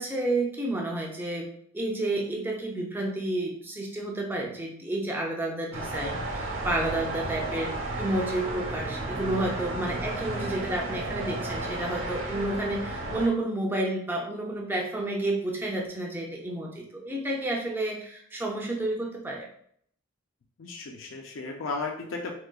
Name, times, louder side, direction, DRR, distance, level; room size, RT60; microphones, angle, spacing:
voice 1, 0.0-1.5 1.7-19.5, right 1 dB, 10° right, -1 dB, 0.5 m, -30 dB
sound 1, 5.7-13.3, right 2 dB, 70° right, 0.8 m, -33 dB
voice 2, 20.6-22.3, left 3 dB, 65° left, 1 dB, 0.4 m, -35 dB
3.9 x 2.8 x 2.3 m, 0.65 s
head